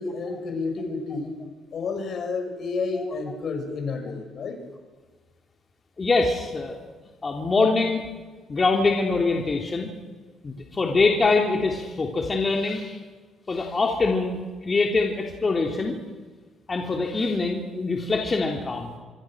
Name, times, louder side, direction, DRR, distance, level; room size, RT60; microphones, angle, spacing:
voice 1, 0.0-1.4 1.7-4.6, left 4 dB, 60° left, 5 dB, 6.0 m, -30 dB
voice 2, 6.0-6.8 7.2-8.0 8.5-9.9 10.4-13.0 13.5-16.0 16.7-18.9, left 3 dB, 30° left, 1 dB, 3.2 m, -24 dB
26.0 x 24.5 x 6.3 m, 1.4 s
cardioid pair, 85°, 0 cm